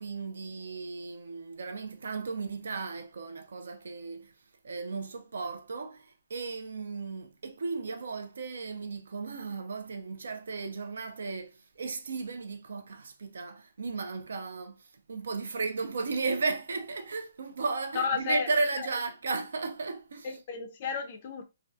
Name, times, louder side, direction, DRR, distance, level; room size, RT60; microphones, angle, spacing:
voice 1, 0.0-4.3 4.6-20.4, right 4 dB, 75° right, 0.4 m, -35 dB
voice 2, 17.9-18.5 18.8-18.9 20.2-21.5, left 6 dB, 30° left, 0.3 m, -32 dB
2.4 x 2.2 x 2.5 m
hypercardioid pair, 175°, 0 cm